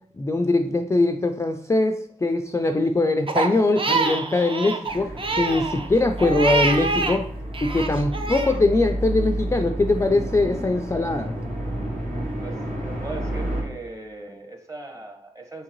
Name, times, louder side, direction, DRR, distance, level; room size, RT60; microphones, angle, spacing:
voice 1, 0.2-7.3 7.6-11.3, left 2 dB, 20° left, 7 dB, 0.4 m, -22 dB
Crying sobbing, 3.3-7.2 7.5-8.6, right 3 dB, 40° right, 0.6 m, -25 dB
sound 1, 4.8-13.6, right 1 dB, 65° right, 1.8 m, -30 dB
voice 2, 12.4-15.6, right 2 dB, 25° right, 4 dB, 1.1 m, -39 dB
4.4 x 3.7 x 3.0 m, 0.63 s
cardioid pair, 55°, 14 cm